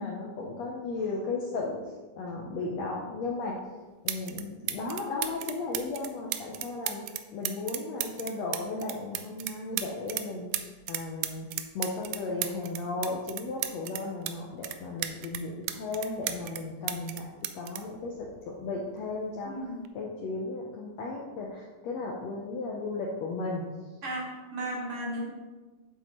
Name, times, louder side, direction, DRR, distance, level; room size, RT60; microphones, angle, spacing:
voice 1, 0.0-1.8 2.2-3.6 4.0-7.0 7.3-10.5 10.9-11.5 11.7-17.2 17.5-19.5 19.9-23.6, left 3 dB, 75° left, -2 dB, 1.5 m, -35 dB
sound 1, 3.6-3.7 4.1-4.4 4.7-10.3 10.5-14.3 14.6-16.6 16.9-18.7 19.6-19.9, right 13 dB, 80° right, 2.0 m, -34 dB
voice 2, 19.4-19.8 24.0-25.3, right 1 dB, 50° right, -2 dB, 2.2 m, -35 dB
9.7 x 7.4 x 3.1 m, 1.3 s
omnidirectional pair, 4.1 m